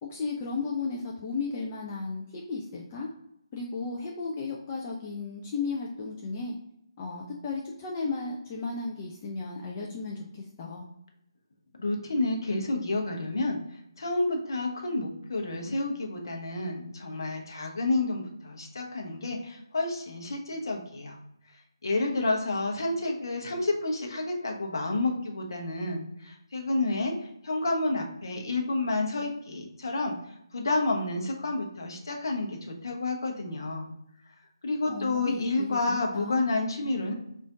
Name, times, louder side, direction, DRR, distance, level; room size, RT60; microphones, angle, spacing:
voice 1, 0.0-3.1 3.5-6.6 7.0-10.9 34.9-36.5, left 4 dB, 20° left, -2 dB, 0.4 m, -34 dB
voice 2, 11.8-21.2 21.8-30.2 30.5-33.9 34.6-37.1, left 2 dB, 50° left, 2 dB, 0.7 m, -30 dB
3.5 x 2.5 x 3.6 m, 0.77 s
figure-of-eight pair, 150°, 3 cm